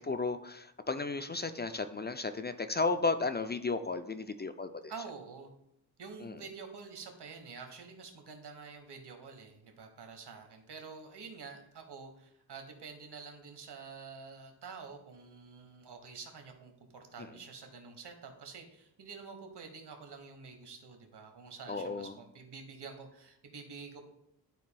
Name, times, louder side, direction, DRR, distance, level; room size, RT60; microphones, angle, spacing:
voice 1, 0.0-4.9 6.2-6.3 17.2-17.3 21.7-22.1, left 3 dB, 25° left, 9 dB, 0.3 m, -34 dB
voice 2, 4.9-5.5 6.0-24.0, right 5 dB, 75° right, 5 dB, 1.3 m, -48 dB
12.0 x 4.1 x 2.3 m, 0.77 s
cardioid pair, 70°, 40 cm